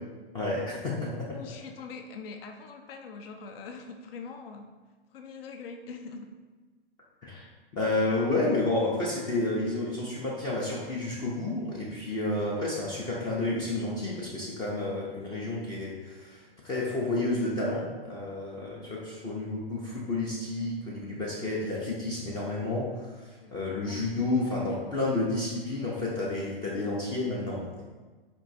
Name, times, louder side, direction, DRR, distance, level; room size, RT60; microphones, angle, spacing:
voice 1, 0.3-1.3 7.2-7.5 7.7-27.8, left 2 dB, 15° left, -4 dB, 0.4 m, -30 dB
voice 2, 1.3-4.7 5.1-6.3 23.4-24.1, left 5 dB, 70° left, 5 dB, 0.5 m, -43 dB
4.5 x 3.0 x 2.5 m, 1.3 s
hypercardioid pair, 125°, 30 cm